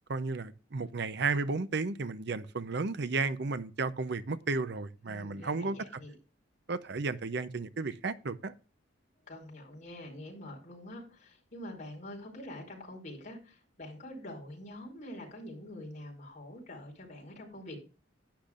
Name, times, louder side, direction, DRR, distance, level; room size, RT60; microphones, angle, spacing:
voice 1, 0.1-6.0 6.7-8.5, right 4 dB, 60° right, 0.7 m, -33 dB
voice 2, 5.1-6.1 9.3-17.8, left 1 dB, 40° left, 5.2 m, -45 dB
11.5 x 10.0 x 2.5 m
head